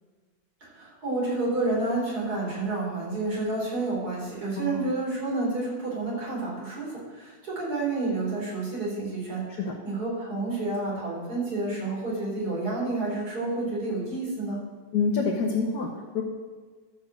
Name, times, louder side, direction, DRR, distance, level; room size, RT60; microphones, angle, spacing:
voice 1, 0.6-14.6, right 2 dB, 70° right, -5 dB, 4.6 m, -30 dB
voice 2, 4.6-4.9 9.6-9.7 14.9-16.2, left 4 dB, 75° left, -1 dB, 1.8 m, -27 dB
12.0 x 5.7 x 7.5 m, 1.4 s
omnidirectional pair, 1.7 m